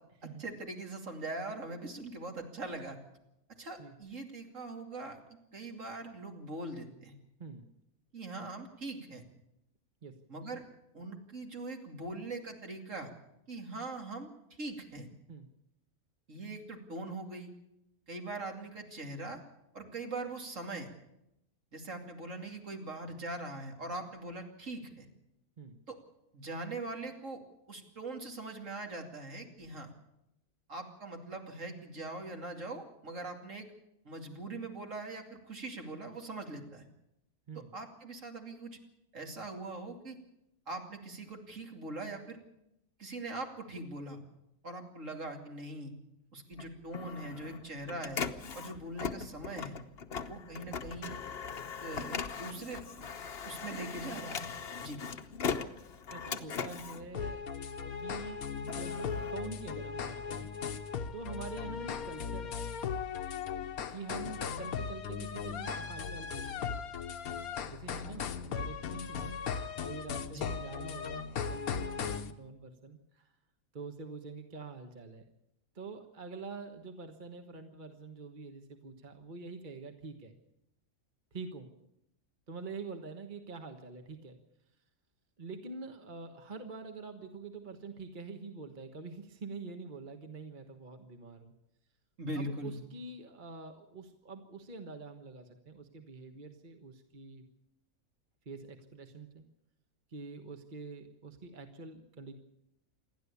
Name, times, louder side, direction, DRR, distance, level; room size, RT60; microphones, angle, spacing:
voice 1, 0.2-3.0 3.6-5.2 5.5-7.1 8.1-9.2 10.3-10.6 10.9-13.1 13.5-14.3 14.6-15.1 16.3-17.5 18.1-19.4 19.7-20.9 21.7-25.1 25.9-26.0 26.3-27.4 27.7-29.9 30.7-33.7 34.0-36.9 37.5-38.8 39.1-40.2 40.7-42.4 43.0-44.2 44.6-45.9 46.3-48.2 48.5-49.8 50.2-51.2 51.8-52.8 53.4-54.5 54.8-55.0 70.3-70.5 92.2-92.8, right 2 dB, 60° right, 3 dB, 3.0 m, -41 dB
Printer, 46.5-58.0 58.4-60.3, left 6 dB, 50° left, 1.1 m, -40 dB
voice 2, 56.1-57.4 58.0-60.5 61.1-62.6 63.9-66.8 67.7-73.3 73.7-75.2 75.7-80.4 81.3-81.7 82.5-84.4 85.4-91.5 92.4-97.4 98.4-99.5 100.1-102.3, right 4 dB, 35° right, 6 dB, 1.5 m, -46 dB
sound 1, 57.1-72.3, left 6 dB, 85° left, 1.5 m, -38 dB
27.5 x 11.5 x 8.4 m, 0.84 s
omnidirectional pair, 1.5 m